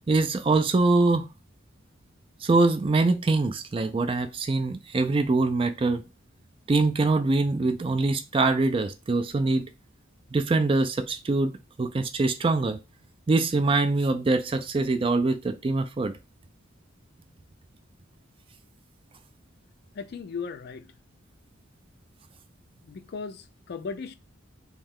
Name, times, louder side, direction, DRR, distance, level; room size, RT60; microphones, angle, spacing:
voice 1, 0.1-1.3 2.4-6.0 6.7-9.6 10.3-11.5 11.8-12.8 13.3-16.1, right 3 dB, 25° right, 0.3 m, -23 dB
voice 2, 19.9-20.9 22.8-24.1, left 5 dB, 50° left, 0.3 m, -36 dB
3.2 x 2.7 x 3.6 m
head